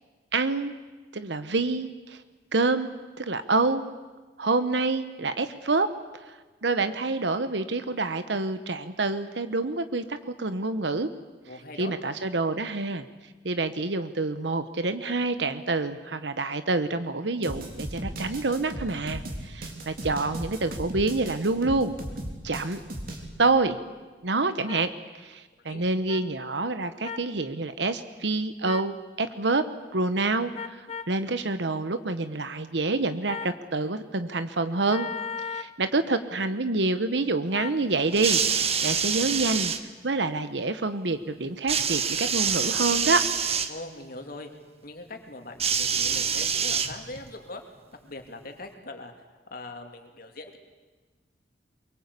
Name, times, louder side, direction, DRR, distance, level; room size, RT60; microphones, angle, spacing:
voice 1, 0.3-0.7 1.1-2.2 2.5-2.9 3.2-3.9 4.4-5.9 6.6-11.1 11.8-13.0 13.4-21.9 22.4-22.8 23.4-23.8 24.2-24.9 25.2-29.7 29.9-35.1 35.5-39.7 40.0-43.3, right 3 dB, 75° right, 11 dB, 1.1 m, -27 dB
voice 2, 11.5-11.9 25.7-25.8 43.7-44.5 44.8-47.6 48.0-49.1 49.5-50.6, left 2 dB, 55° left, 5 dB, 2.8 m, -41 dB
sound 1, 17.4-23.3, right 1 dB, 55° right, 3.8 m, -37 dB
sound 2, 24.7-24.8 26.1-26.2 27.0-27.3 28.6-28.9 30.5-31.1 33.3-33.6 34.9-35.7 37.5-37.8, left 6 dB, 35° left, 0.8 m, -36 dB
sound 3, 38.1-39.8 41.7-43.7 45.6-47.3 48.3-48.4, right 7 dB, 35° right, 1.3 m, -26 dB
23.5 x 23.0 x 8.4 m, 1.3 s
head